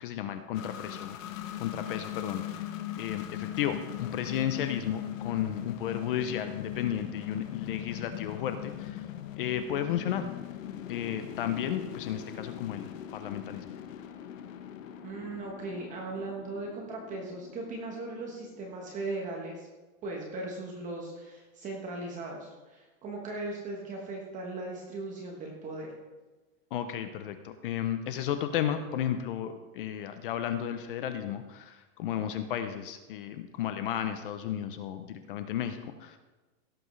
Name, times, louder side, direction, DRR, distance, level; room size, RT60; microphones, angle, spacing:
voice 1, 0.0-2.7 3.0-9.1 9.4-10.3 10.9-13.7 26.7-36.2, left 10 dB, 40° left, 9 dB, 0.6 m, -33 dB
sound 1, 0.5-19.0, left 11 dB, 65° left, 1.1 m, -41 dB
voice 2, 15.0-19.7 20.0-25.9, right 2 dB, 20° right, 0 dB, 1.1 m, -38 dB
16.5 x 7.7 x 3.2 m, 1.2 s
supercardioid pair, 170°, 42 cm